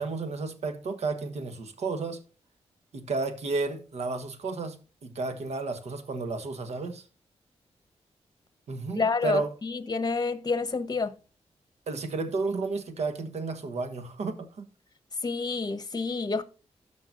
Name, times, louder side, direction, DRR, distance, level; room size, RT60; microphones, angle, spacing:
voice 1, 0.0-2.2 2.9-7.0 8.7-9.5 11.9-14.6, right 3 dB, 75° right, 1.3 m, -32 dB
voice 2, 9.0-11.1 15.2-16.4, left 4 dB, 35° left, 1.0 m, -28 dB
13.5 x 5.8 x 2.6 m
cardioid pair, 60°, 11 cm